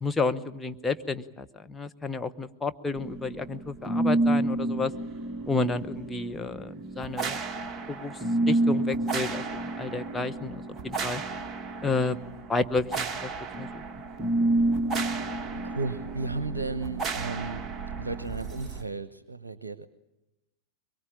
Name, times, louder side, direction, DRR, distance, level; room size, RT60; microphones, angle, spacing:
voice 1, 0.0-4.9 5.5-7.4 7.9-8.2 8.5-11.2 11.8-12.2 12.5-13.8, left 3 dB, 10° left, 7 dB, 1.1 m, -31 dB
sound 1, 3.0-18.8, right 2 dB, 20° right, 1.9 m, -30 dB
voice 2, 15.6-17.6 18.0-19.9, right 3 dB, 75° right, 15 dB, 0.9 m, -34 dB
24.0 x 22.5 x 8.8 m, 0.98 s
figure-of-eight pair, 90°, 0 cm